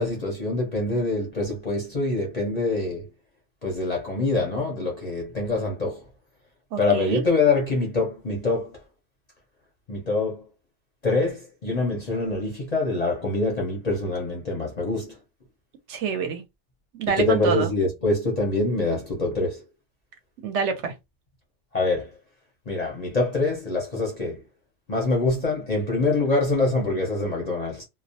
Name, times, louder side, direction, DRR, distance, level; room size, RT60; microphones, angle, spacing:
voice 1, 0.0-3.1 3.6-6.0 6.8-8.7 9.9-10.4 11.0-15.2 17.2-19.6 21.7-22.1 22.7-24.4 24.9-27.8, left 3 dB, 45° left, 0.6 m, -25 dB
voice 2, 6.7-7.2 15.9-16.4 16.9-17.7 20.4-20.9, right 6 dB, 70° right, 0.9 m, -26 dB
2.3 x 2.0 x 2.6 m
omnidirectional pair, 1.3 m